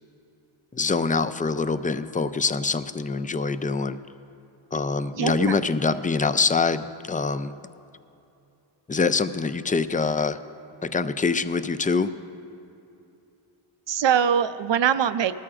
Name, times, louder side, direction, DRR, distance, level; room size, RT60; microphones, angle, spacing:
voice 1, 0.7-4.0 4.7-7.5 8.9-10.4 10.8-12.1, left 4 dB, 20° left, 12 dB, 0.3 m, -24 dB
voice 2, 5.2-5.6 13.9-15.4, right 8 dB, 60° right, 13 dB, 0.6 m, -22 dB
19.5 x 13.5 x 2.5 m, 2.7 s
wide cardioid pair, 65°, 49 cm